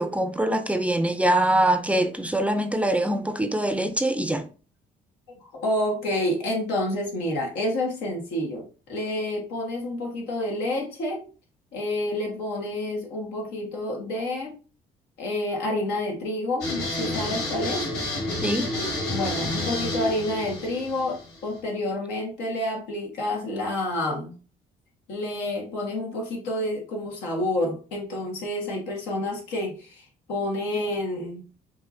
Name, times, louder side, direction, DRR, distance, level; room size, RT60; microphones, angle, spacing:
voice 1, 0.0-4.5 18.4-18.7, right 1 dB, 10° right, 0.4 m, -23 dB
voice 2, 5.4-11.2 11.7-14.6 15.2-17.9 18.8-24.3 25.1-31.4, left 1 dB, 90° left, 1.6 m, -29 dB
sound 1, 16.6-21.6, left 2 dB, 70° left, 2.2 m, -30 dB
5.6 x 2.9 x 2.7 m
cardioid pair, 110°, 17 cm